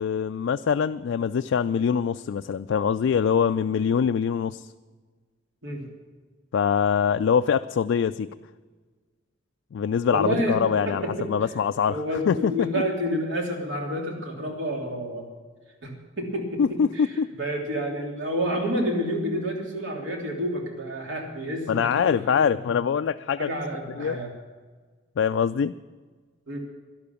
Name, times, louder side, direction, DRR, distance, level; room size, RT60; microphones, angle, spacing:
voice 1, 0.0-4.7 6.5-8.3 9.7-12.7 16.6-17.4 21.7-23.5 23.9-24.2 25.2-25.7, left 7 dB, 75° left, 9 dB, 0.3 m, -24 dB
voice 2, 10.1-10.6 10.8-11.3 11.9-15.3 15.8-15.9 16.2-16.8 17.4-22.5 23.4-24.3 26.5-26.6, equal, 75° right, 0 dB, 3.1 m, -29 dB
12.0 x 12.0 x 7.1 m, 1.4 s
head